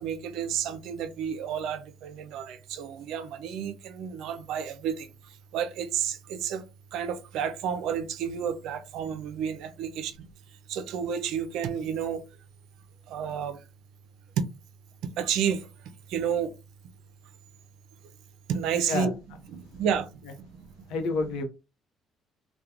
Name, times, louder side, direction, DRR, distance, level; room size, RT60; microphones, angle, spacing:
voice 1, 0.0-6.6 6.9-10.3 10.7-12.3 13.1-13.6 15.2-15.7 16.1-16.5 18.5-19.1 19.5-20.7, right 8 dB, 80° right, 0.4 m, -31 dB
voice 2, 18.9-19.2 20.9-21.4, left 3 dB, 85° left, 0.7 m, -28 dB
2.4 x 2.2 x 2.9 m
cardioid pair, 85°, 0 cm